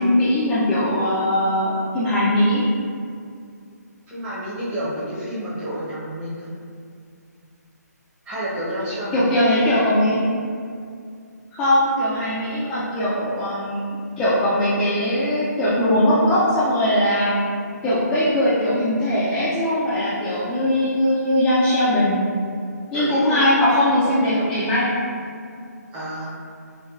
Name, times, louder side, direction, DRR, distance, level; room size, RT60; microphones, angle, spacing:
voice 1, 0.0-2.6 9.1-10.2 11.6-13.8 14.2-17.4 17.8-22.3 22.9-25.0, left 1 dB, 10° left, -11 dB, 0.3 m, -20 dB
voice 2, 4.1-6.5 8.2-9.3 22.9-23.4 25.9-26.3, equal, 15° right, -10 dB, 0.8 m, -29 dB
4.5 x 2.2 x 2.4 m, 2.3 s
hypercardioid pair, 150°, 9 cm